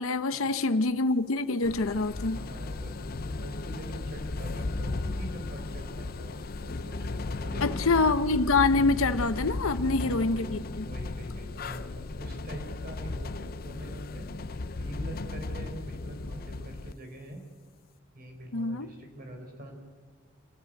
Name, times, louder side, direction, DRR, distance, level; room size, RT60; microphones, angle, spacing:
voice 1, 0.0-2.4 7.6-10.9 18.5-18.9, left 3 dB, 90° left, 11 dB, 0.8 m, -26 dB
sound 1, 1.6-16.9, left 3 dB, 45° left, 0.6 m, -35 dB
voice 2, 2.3-7.1 7.4-7.8 9.6-10.5 10.9-17.4 18.1-19.7, right 1 dB, 45° right, 3 dB, 4.4 m, -44 dB
26.5 x 13.5 x 9.1 m, 1.5 s
head